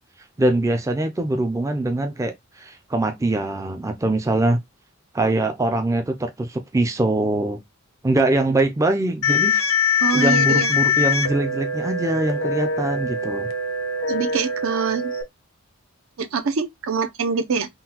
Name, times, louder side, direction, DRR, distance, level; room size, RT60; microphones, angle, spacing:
voice 1, 0.4-4.6 5.1-7.6 8.0-9.6 10.1-13.5, right 2 dB, 15° right, 0.3 m, -23 dB
sound 1, 9.2-15.2, left 5 dB, 80° left, 0.6 m, -23 dB
voice 2, 10.0-10.8 14.1-15.1 16.2-17.7, right 5 dB, 70° right, 0.5 m, -24 dB
3.7 x 2.2 x 2.8 m
head